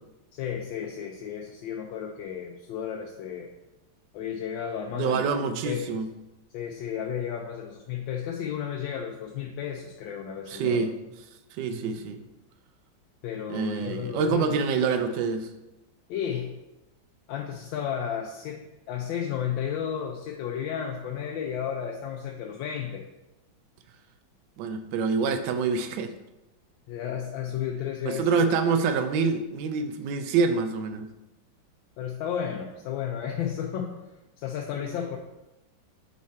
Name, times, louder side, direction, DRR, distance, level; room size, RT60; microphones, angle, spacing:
voice 1, 0.3-3.5 4.1-5.2 5.6-6.0 6.5-10.9 13.2-14.9 16.1-16.5 17.3-23.1 26.9-28.3 32.0-33.9 34.4-35.2, left 8 dB, 80° left, 2 dB, 1.3 m, -33 dB
voice 2, 4.9-6.1 10.5-10.9 11.5-12.2 13.5-15.5 24.6-26.1 28.0-31.1, right 5 dB, 75° right, 8 dB, 1.3 m, -26 dB
8.3 x 3.2 x 4.1 m, 0.99 s
omnidirectional pair, 2.1 m